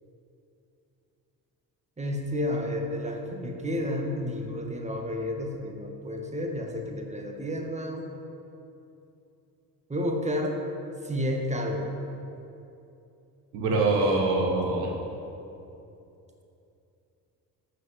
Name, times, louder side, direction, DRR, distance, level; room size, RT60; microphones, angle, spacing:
voice 1, 2.0-8.1 9.9-10.6 11.0-11.9, left 1 dB, 15° right, 2 dB, 1.8 m, -31 dB
voice 2, 13.5-14.9, right 2 dB, 70° right, -1 dB, 1.7 m, -24 dB
12.5 x 6.7 x 7.4 m, 2.8 s
figure-of-eight pair, 40°, 48 cm